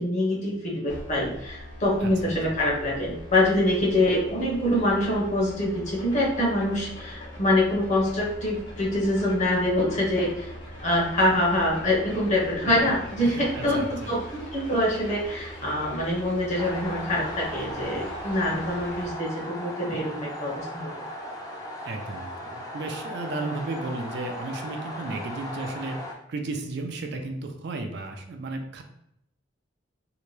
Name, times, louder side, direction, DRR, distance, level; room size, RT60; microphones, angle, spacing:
voice 1, 0.0-10.5 10.8-21.0, left 1 dB, 40° left, -3 dB, 0.9 m, -25 dB
sound 1, 0.9-19.1, equal, 80° left, 1.1 m, -41 dB
voice 2, 2.0-2.6 12.6-12.7 13.2-14.1 21.8-26.0 26.3-28.8, right 2 dB, 60° right, 4 dB, 0.4 m, -34 dB
sound 2, 16.6-26.1, equal, 20° left, 0.5 m, -37 dB
2.8 x 2.2 x 3.1 m, 0.77 s
head